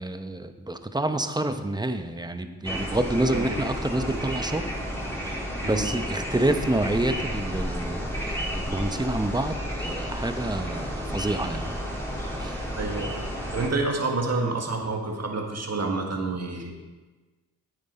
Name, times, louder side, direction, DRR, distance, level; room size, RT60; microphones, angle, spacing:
voice 1, 0.0-4.7 5.2-5.4 5.6-11.7 12.4-12.6, right 1 dB, 10° right, 8 dB, 0.8 m, -28 dB
sound 1, 2.6-13.7, equal, 5° left, 3.2 m, -32 dB
voice 2, 12.7-13.3 13.5-16.7, right 3 dB, 45° right, 1 dB, 1.7 m, -28 dB
9.9 x 8.7 x 4.3 m, 1.3 s
cardioid pair, 45°, 37 cm